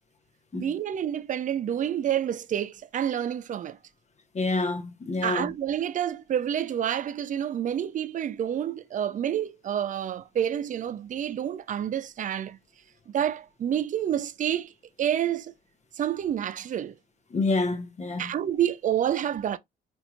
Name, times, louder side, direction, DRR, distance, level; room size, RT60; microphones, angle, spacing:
voice 1, 0.6-3.8 5.2-12.6 13.1-14.7 15.0-15.5 16.0-16.9 18.2-19.6, right 10 dB, 40° right, 0.4 m, -28 dB
voice 2, 4.3-5.5 17.3-18.3, left 3 dB, 35° left, 0.7 m, -28 dB
4.4 x 2.8 x 2.4 m
cardioid pair, 90°, 20 cm